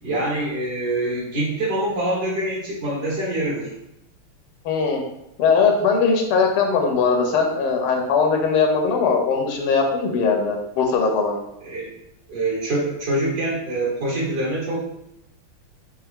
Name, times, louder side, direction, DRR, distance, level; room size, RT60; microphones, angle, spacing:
voice 1, 0.0-3.7 11.6-11.9 12.3-14.8, right 1 dB, 50° right, -4 dB, 1.7 m, -25 dB
voice 2, 4.7-5.0 5.4-11.4, left 5 dB, 85° left, 2 dB, 1.7 m, -20 dB
4.6 x 3.0 x 3.6 m, 0.83 s
omnidirectional pair, 2.4 m